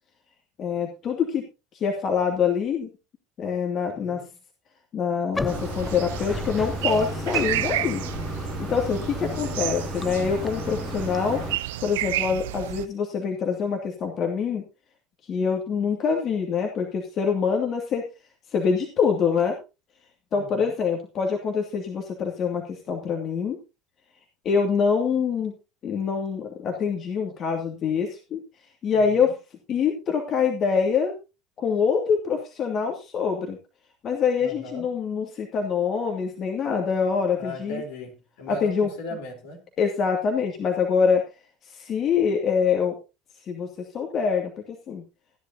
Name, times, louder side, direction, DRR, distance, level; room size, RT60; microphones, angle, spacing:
voice 1, 0.6-1.4 1.7-2.9 3.4-4.2 4.9-8.0 8.7-11.4 11.8-14.6 15.3-18.1 18.5-19.6 20.3-23.6 24.4-25.5 25.8-28.4 28.8-29.3 29.7-31.1 31.6-33.6 34.0-37.8 38.5-38.9 39.8-41.2 41.7-42.9 43.5-43.7 43.9-45.0, left 6 dB, 45° left, 2 dB, 2.5 m, -25 dB
voice 2, 3.9-4.3 9.4-9.8 20.3-20.8 28.9-29.3 34.4-34.9 37.3-39.7, left 1 dB, 70° left, 1 dB, 4.1 m, -38 dB
Bathtub (filling or washing), 5.3-11.6, left 3 dB, 15° left, 0.6 m, -33 dB
sound 1, 5.5-12.9, right 14 dB, 75° right, 0.5 m, -31 dB
15.0 x 10.5 x 2.8 m, 0.28 s
hypercardioid pair, 75°, 0 cm